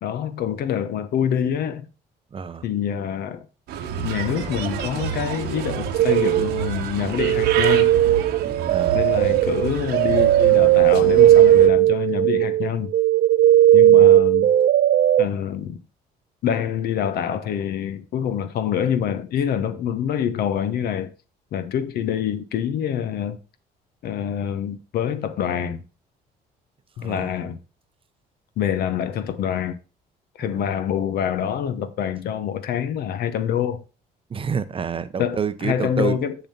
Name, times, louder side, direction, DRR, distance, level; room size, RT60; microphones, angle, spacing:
voice 1, 0.0-1.9 2.6-3.5 4.0-7.9 8.9-12.9 13.7-14.5 15.2-15.8 16.4-21.1 21.5-23.4 24.0-25.8 27.0-27.6 28.6-29.8 30.4-33.8 35.2-36.3, left 9 dB, 65° left, 1.0 m, -26 dB
voice 2, 2.3-2.6 8.7-9.0 13.9-14.1 27.0-27.3 30.4-30.7 34.3-36.2, right 6 dB, 30° right, 0.7 m, -28 dB
Bird, 3.7-11.7, right 8 dB, 80° right, 1.3 m, -29 dB
sound 1, 5.9-6.7 7.2-15.3, right 13 dB, 55° right, 0.4 m, -16 dB
7.0 x 6.8 x 4.3 m
cardioid pair, 110°, 17 cm